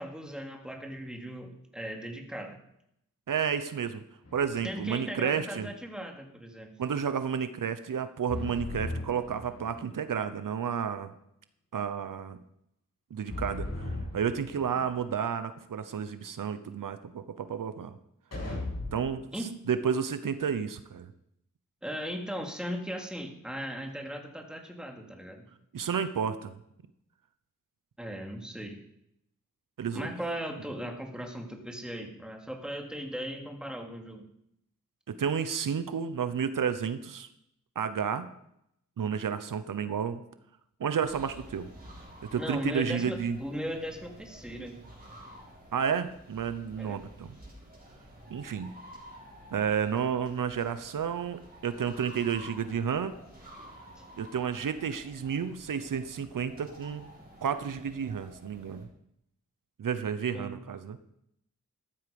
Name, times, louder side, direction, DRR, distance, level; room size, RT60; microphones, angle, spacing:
voice 1, 0.0-2.6 4.6-6.7 19.3-19.5 21.8-25.4 28.0-28.8 29.9-34.3 42.4-44.8 46.8-47.0 54.0-54.1 60.3-60.6, equal, ahead, 2 dB, 2.6 m, -38 dB
voice 2, 3.3-4.0 4.3-5.7 6.8-11.1 11.7-12.4 13.1-18.0 18.9-19.2 19.7-21.1 25.7-26.6 29.8-30.1 35.1-37.3 37.8-38.3 39.0-40.2 40.8-41.7 42.3-43.4 45.7-47.4 48.3-48.7 49.5-53.2 54.2-57.0 57.4-58.9 59.8-61.0, right 7 dB, 85° right, 12 dB, 0.9 m, -31 dB
sound 1, 4.2-5.0 8.3-10.0 13.3-15.0 18.3-19.2, left 2 dB, 50° left, 7.6 m, -38 dB
sound 2, 41.0-58.8, equal, 30° right, 6.8 m, -51 dB
14.5 x 11.5 x 5.3 m, 0.76 s
wide cardioid pair, 80°, 32 cm